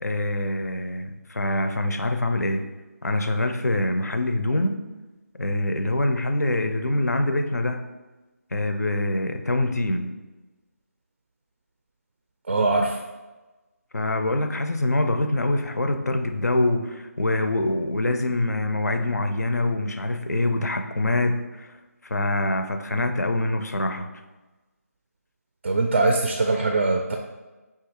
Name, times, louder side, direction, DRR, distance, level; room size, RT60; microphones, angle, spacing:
voice 1, 0.0-2.6 3.0-4.8 5.4-7.8 8.5-10.1 13.9-21.8 22.0-24.1, left 2 dB, 80° left, 8 dB, 0.4 m, -25 dB
voice 2, 12.5-13.0 25.6-27.2, right 2 dB, 45° right, 3 dB, 0.4 m, -22 dB
5.9 x 2.4 x 2.9 m, 1.2 s
figure-of-eight pair, 155°, 9 cm